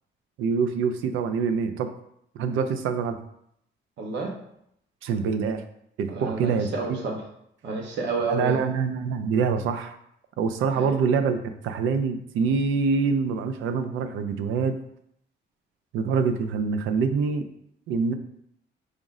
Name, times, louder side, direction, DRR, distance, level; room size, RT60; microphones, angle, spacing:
voice 1, 0.4-1.9 2.4-3.2 5.0-5.6 6.0-7.0 8.3-10.0 10.4-14.8 15.9-17.5 17.9-18.1, right 5 dB, 85° right, 9 dB, 0.4 m, -25 dB
voice 2, 4.0-4.3 6.1-7.2 7.6-8.6 10.7-10.9, right 3 dB, 65° right, -1 dB, 0.9 m, -30 dB
5.0 x 2.0 x 3.6 m, 0.74 s
cardioid pair, 90°, 20 cm